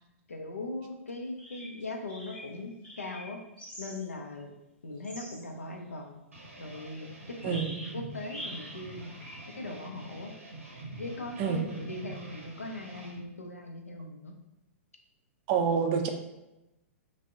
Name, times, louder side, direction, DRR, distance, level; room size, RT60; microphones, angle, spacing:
voice 1, 0.3-3.4 3.8-4.5 4.8-6.2 6.6-7.1 7.4-9.1 9.5-10.3 11.0-14.3, left 2 dB, 80° left, 3 dB, 0.4 m, -40 dB
sound 1, 1.2-1.8 2.1-4.0 4.4-4.5 5.0-5.4 7.4-8.8 9.2-9.4, equal, 10° left, 0.7 m, -44 dB
sound 2, 6.3-13.2, right 2 dB, 85° right, 0.7 m, -46 dB
voice 2, 15.5-16.1, right 6 dB, 35° right, 4 dB, 0.3 m, -26 dB
3.3 x 2.0 x 2.4 m, 0.93 s
figure-of-eight pair, 105°, 7 cm